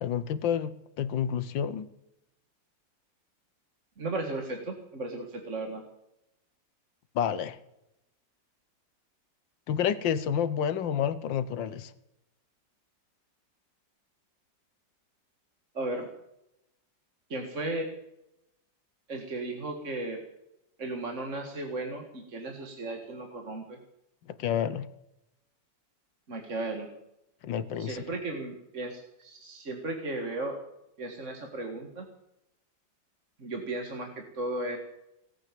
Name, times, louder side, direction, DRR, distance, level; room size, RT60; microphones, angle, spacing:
voice 1, 0.0-1.9 7.1-7.6 9.7-11.9 24.4-24.9 27.4-28.0, left 8 dB, 80° left, 15 dB, 1.7 m, -29 dB
voice 2, 4.0-5.8 15.7-16.1 17.3-17.9 19.1-20.2 20.8-23.8 26.3-26.9 27.8-30.6 31.0-32.1 33.4-34.8, right 2 dB, 40° right, 3 dB, 2.1 m, -35 dB
18.0 x 9.0 x 8.7 m, 0.86 s
omnidirectional pair, 2.0 m